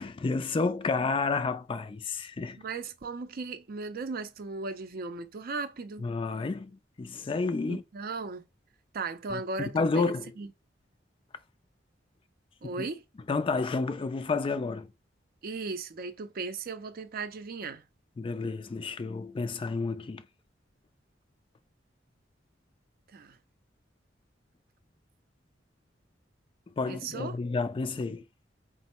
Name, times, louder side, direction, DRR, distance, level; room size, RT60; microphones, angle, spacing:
voice 1, 0.0-2.6 6.0-7.8 9.3-10.3 12.6-12.8 13.3-14.9 18.2-20.3 26.7-28.3, left 4 dB, 30° left, 0.3 m, -30 dB
voice 2, 2.6-6.1 7.7-8.5 8.9-10.5 12.6-13.0 15.4-17.8 23.1-23.4 26.9-27.4, right 3 dB, 55° right, 0.5 m, -37 dB
4.2 x 2.0 x 4.2 m
head